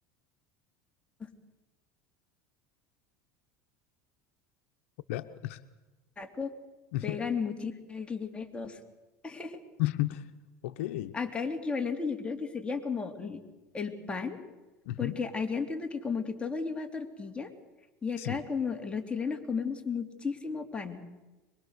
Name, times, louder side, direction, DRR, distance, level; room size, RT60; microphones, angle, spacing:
voice 1, 5.1-5.6 6.9-7.2 9.8-10.2 10.6-11.1 14.9-15.2 18.2-18.4, left 16 dB, 80° left, 11 dB, 0.9 m, -32 dB
voice 2, 6.2-6.5 7.0-8.8 9.2-9.6 11.1-13.4 13.7-14.4 15.0-17.5 18.0-21.1, left 5 dB, 15° left, 3 dB, 3.1 m, -34 dB
24.0 x 22.0 x 6.6 m, 1.1 s
supercardioid pair, 110°, 7 cm